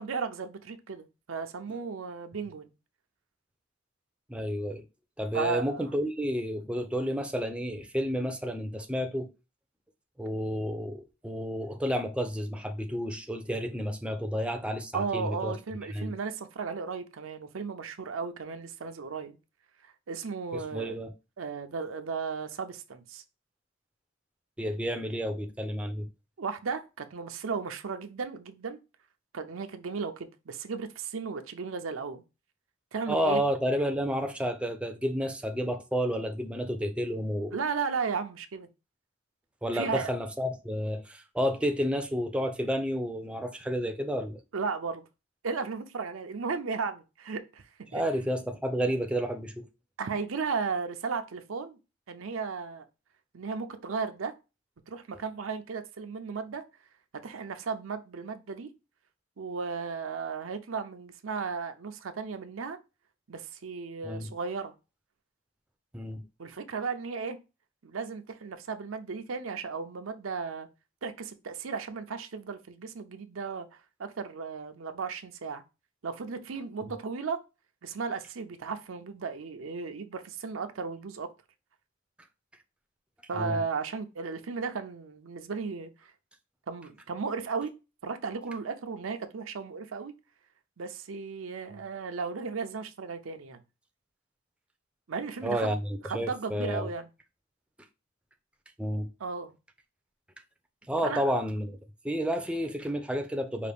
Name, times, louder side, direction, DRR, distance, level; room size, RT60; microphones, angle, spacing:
voice 1, 0.0-2.7 5.3-5.9 14.9-19.4 19.8-21.0 21.4-23.2 26.4-28.8 29.3-32.2 32.9-33.4 37.5-38.7 39.7-40.1 44.5-45.0 45.4-47.6 47.9-48.0 50.0-51.8 52.1-52.9 53.3-54.3 54.9-56.6 57.2-58.7 59.4-62.8 63.3-64.7 66.4-67.4 67.8-70.7 71.0-73.7 74.0-75.6 76.0-77.4 77.8-81.3 83.3-86.1 86.7-87.7 88.0-90.1 90.8-93.6 95.1-95.7 96.0-97.1 99.2-99.5 101.0-101.2, right 5 dB, 90° right, 0.6 m, -35 dB
voice 2, 4.3-4.8 5.2-9.3 10.2-15.5 15.9-16.1 20.5-21.1 24.6-26.1 33.1-37.6 39.6-44.4 47.9-49.7 64.0-64.3 65.9-66.2 83.4-83.6 91.7-91.8 95.4-96.9 98.8-99.1 100.9-101.8 102.0-103.7, equal, 5° right, 0.4 m, -31 dB
5.0 x 2.5 x 3.3 m
head